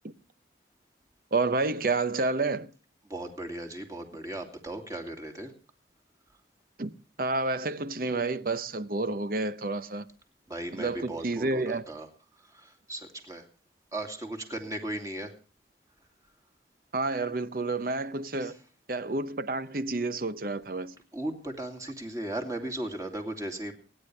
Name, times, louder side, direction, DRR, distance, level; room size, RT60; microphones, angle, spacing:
voice 1, 1.3-2.7 6.8-6.9 7.2-10.1 10.7-11.8 16.9-18.6 18.9-21.0, right 3 dB, 50° right, 0.8 m, -29 dB
voice 2, 3.1-5.5 10.5-12.1 12.4-13.4 13.9-15.3 18.4-18.5 21.1-23.7, right 1 dB, 20° right, 2.5 m, -37 dB
28.0 x 9.9 x 3.3 m
head